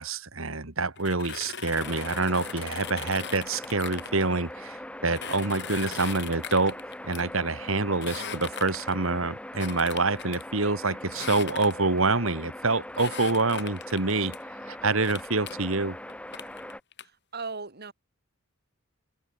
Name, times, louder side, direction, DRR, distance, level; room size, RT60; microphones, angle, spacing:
voice 1, 0.0-6.8 7.0-14.4 14.6-16.0, right 3 dB, 65° right, 2.3 m, -27 dB
sound 1, 1.0-4.1 5.1-7.2 7.9-9.1 9.6-10.4 11.1-12.0 12.9-14.4 15.0-15.6 16.1-17.0, left 7 dB, 55° left, 5.7 m, -39 dB
sound 2, 1.7-16.8, left 1 dB, 5° left, 2.2 m, -41 dB
voice 2, 17.0-17.9, right 4 dB, 45° right, 2.6 m, -37 dB
head